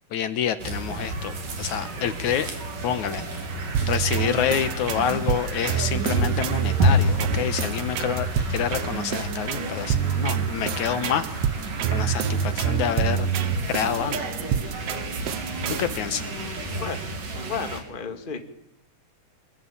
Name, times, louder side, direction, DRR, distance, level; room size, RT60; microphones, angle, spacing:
voice 1, 0.1-2.5 2.8-3.4 3.8-11.3 11.9-13.3 13.7-14.2 15.7-16.2, left 9 dB, 70° left, 12 dB, 2.6 m, -27 dB
sound 1, 0.6-17.8, right 1 dB, 85° right, 5.3 m, -30 dB
sound 2, 3.7-16.0, right 10 dB, 60° right, 2.0 m, -27 dB
voice 2, 16.2-17.0 17.4-18.4, left 6 dB, 20° left, 6 dB, 1.9 m, -33 dB
26.0 x 21.5 x 8.8 m, 0.76 s
omnidirectional pair, 3.7 m